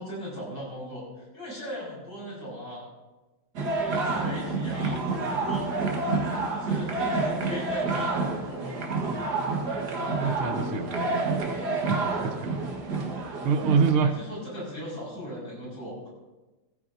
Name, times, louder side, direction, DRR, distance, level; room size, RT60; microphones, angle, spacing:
voice 1, 0.0-2.8 3.8-5.0 5.3-5.7 6.5-8.8 14.0-16.1, equal, 55° left, -5 dB, 5.8 m, -38 dB
sound 1, 3.6-13.9, right 3 dB, 55° right, 1.8 m, -28 dB
voice 2, 10.2-11.5 11.9-12.6 13.4-14.2, right 5 dB, 85° right, 8 dB, 1.8 m, -26 dB
16.5 x 14.0 x 2.6 m, 1.1 s
omnidirectional pair, 2.3 m